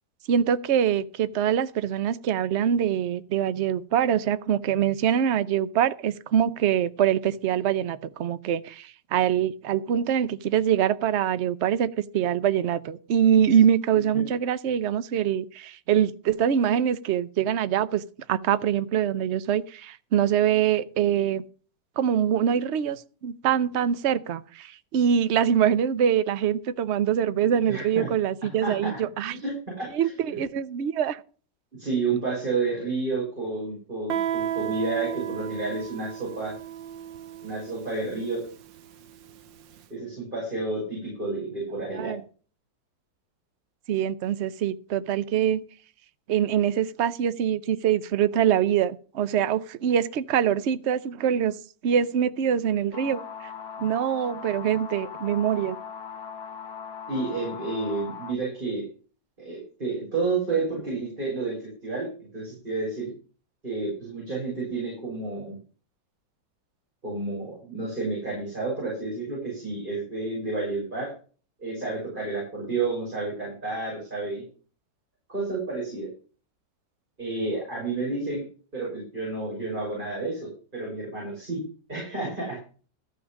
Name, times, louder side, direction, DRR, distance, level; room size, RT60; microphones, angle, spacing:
voice 1, 0.3-18.0 18.3-21.4 22.0-29.4 29.9-31.2 42.0-42.2 43.9-45.6 46.3-51.6 51.8-53.5 53.8-55.8, right 9 dB, 60° right, 0.7 m, -24 dB
voice 2, 27.7-28.1 28.6-29.0 29.3-30.4 31.8-36.5 37.4-38.4 39.9-42.1 57.1-58.8 59.4-61.6 61.8-62.1 62.3-63.1 63.6-65.6 67.0-71.1 71.6-74.4 75.3-76.1 77.2-78.4 78.7-81.6 81.9-82.6, right 3 dB, 25° right, 6.5 m, -30 dB
Guitar, 34.1-39.5, right 10 dB, 85° right, 1.6 m, -33 dB
sound 1, 52.9-58.4, left 7 dB, 60° left, 1.4 m, -39 dB
13.5 x 5.7 x 7.3 m
omnidirectional pair, 2.0 m